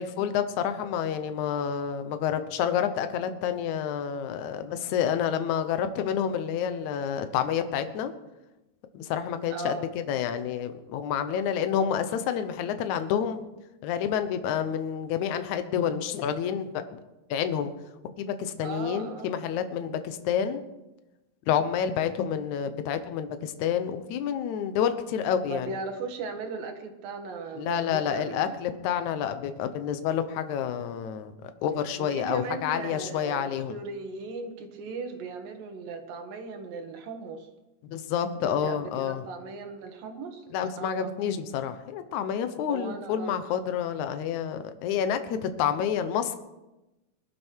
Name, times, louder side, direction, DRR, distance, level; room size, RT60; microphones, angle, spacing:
voice 1, 0.0-8.1 8.9-9.8 10.1-13.4 13.8-17.0 17.3-17.7 18.0-20.6 21.5-25.8 27.6-33.8 37.8-39.2 40.5-46.4, left 8 dB, 65° left, 9 dB, 2.1 m, -29 dB
voice 2, 9.5-9.9 18.6-19.4 25.5-28.6 32.0-37.5 38.4-40.4 40.8-41.1 42.7-43.4, right 4 dB, 70° right, 4 dB, 3.4 m, -37 dB
21.0 x 12.0 x 4.6 m, 1.0 s
omnidirectional pair, 4.2 m